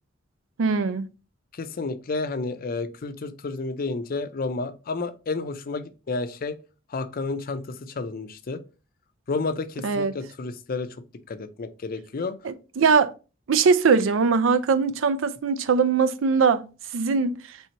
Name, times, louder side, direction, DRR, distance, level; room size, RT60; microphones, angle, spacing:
voice 1, 0.6-1.1 9.8-10.2 12.4-13.1 13.5-16.7 16.9-17.3, right 5 dB, 80° right, 0.4 m, -21 dB
voice 2, 1.5-6.6 6.9-8.6 9.3-10.9 11.3-12.4, left 3 dB, 45° left, 0.5 m, -31 dB
4.3 x 3.4 x 2.8 m
head